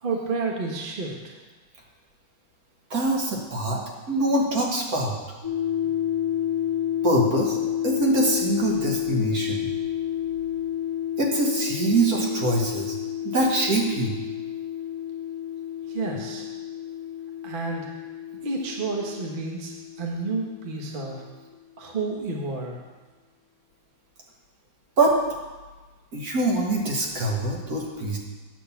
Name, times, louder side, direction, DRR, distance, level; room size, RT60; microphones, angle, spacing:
voice 1, 0.0-1.4 15.9-16.5 17.4-18.0 18.4-21.2 21.8-22.8, right 3 dB, 35° right, -1 dB, 1.1 m, -30 dB
voice 2, 2.9-5.2 7.0-7.6 7.8-9.7 11.2-12.9 13.2-14.2 25.0-25.2 26.1-28.2, right 2 dB, 50° right, -1 dB, 1.9 m, -24 dB
sound 1, 5.4-21.0, left 10 dB, 20° left, 0.6 m, -30 dB
9.1 x 6.4 x 7.0 m, 1.3 s
omnidirectional pair, 2.1 m